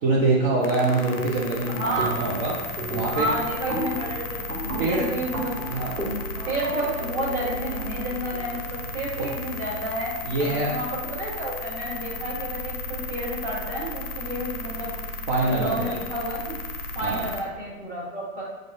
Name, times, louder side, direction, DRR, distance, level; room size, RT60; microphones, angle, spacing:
voice 1, 0.0-2.6 2.9-3.3 4.8-5.1 5.7-5.9 9.2-9.3 10.2-10.8 15.3-16.0 17.0-17.2, right 2 dB, 40° right, -5 dB, 0.8 m, -24 dB
sound 1, 0.6-17.4, left 2 dB, 45° left, 0.6 m, -35 dB
sound 2, 1.2-1.6 2.0-2.5 2.8-8.6, right 1 dB, 90° right, 1.2 m, -34 dB
voice 2, 1.7-2.2 2.8-6.0 6.5-10.1 10.4-14.9 15.4-16.5 16.9-18.4, right 1 dB, 15° right, -7 dB, 1.3 m, -31 dB
6.1 x 2.5 x 2.6 m, 1.2 s
figure-of-eight pair, 110°, 43 cm